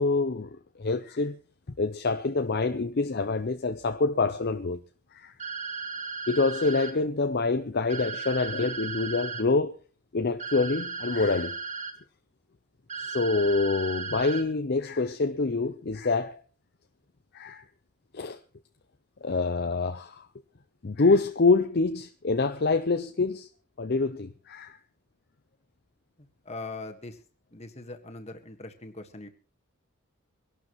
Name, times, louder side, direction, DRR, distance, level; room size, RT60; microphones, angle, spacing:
voice 1, 0.0-1.4 1.8-4.8 5.1-5.3 6.3-9.8 10.1-11.6 13.0-16.4 17.3-17.6 18.1-18.4 19.2-20.3 20.8-23.5 23.8-24.8, left 3 dB, 45° left, 0.6 m, -26 dB
sound 1, 5.4-6.9 7.9-9.4 10.4-11.9 12.9-14.4, right 5 dB, 30° right, 1.7 m, -35 dB
voice 2, 26.2-27.2 27.5-29.3, left 2 dB, 30° left, 1.6 m, -41 dB
24.0 x 11.5 x 3.1 m
head